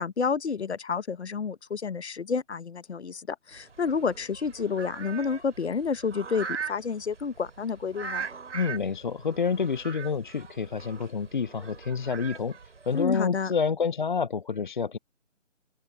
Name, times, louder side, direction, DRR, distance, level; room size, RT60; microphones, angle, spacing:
voice 1, 0.0-8.3 12.9-13.5, left 5 dB, 55° left, 1.2 m, -30 dB
sound 1, 3.5-13.1, right 6 dB, 65° right, 4.0 m, -41 dB
voice 2, 8.5-12.6 12.9-15.0, left 5 dB, 40° left, 0.6 m, -28 dB
open air
figure-of-eight pair, 150°, 39 cm